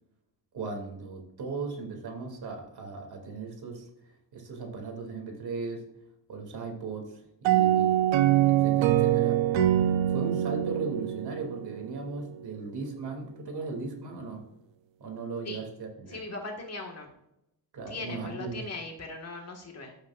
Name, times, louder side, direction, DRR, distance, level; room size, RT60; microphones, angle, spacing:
voice 1, 0.5-3.9 4.3-5.8 6.3-9.4 10.1-14.4 15.0-16.2 17.7-18.6, right 4 dB, 55° right, 3 dB, 2.5 m, -37 dB
sound 1, 7.4-12.1, right 12 dB, 80° right, 0.8 m, -24 dB
voice 2, 16.1-17.1 17.9-20.0, left 3 dB, 35° left, 1 dB, 1.7 m, -39 dB
15.0 x 8.4 x 2.4 m, 0.83 s
wide cardioid pair, 170°, 44 cm